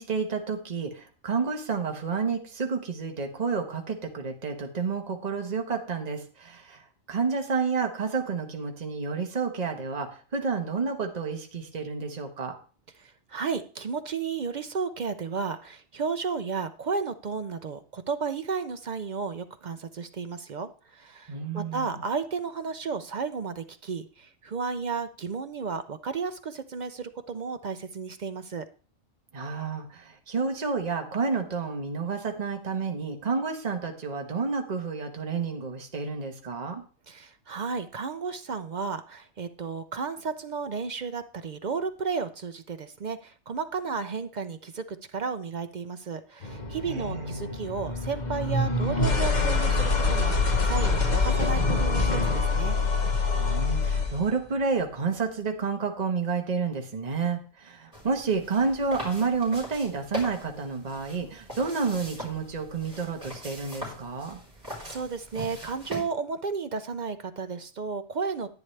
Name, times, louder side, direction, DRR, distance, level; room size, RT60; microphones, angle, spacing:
voice 1, 0.0-6.8 7.1-12.5 21.3-22.0 29.3-36.8 46.8-47.6 53.3-64.4, right 5 dB, 35° right, 3 dB, 1.2 m, -30 dB
voice 2, 13.0-28.7 37.1-52.8 64.8-68.5, right 5 dB, 55° right, 10 dB, 0.5 m, -33 dB
sound 1, 46.4-54.3, left 3 dB, 40° left, 1.2 m, -25 dB
sound 2, 57.9-66.0, equal, 15° right, 4.0 m, -41 dB
10.5 x 9.6 x 3.2 m, 0.39 s
omnidirectional pair, 1.2 m